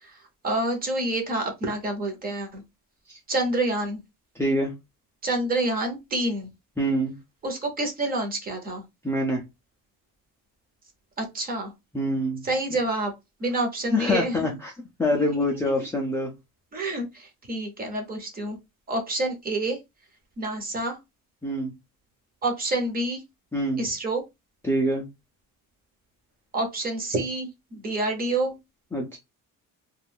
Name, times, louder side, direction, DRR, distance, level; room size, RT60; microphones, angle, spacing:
voice 1, 0.4-2.6 3.3-4.0 5.2-6.5 7.4-8.8 11.2-11.7 12.4-13.1 13.4-14.6 15.1-15.8 16.7-18.6 18.9-19.8 20.4-21.0 22.4-23.2 23.8-24.2 26.5-28.6, right 2 dB, 25° right, 0.7 m, -28 dB
voice 2, 4.4-4.7 6.8-7.1 9.0-9.4 11.9-12.4 13.9-14.7 15.0-16.3 21.4-21.7 23.5-23.8 24.6-25.0 28.9-29.2, equal, 10° left, 0.3 m, -25 dB
2.4 x 2.3 x 3.3 m
cardioid pair, 170°, 34 cm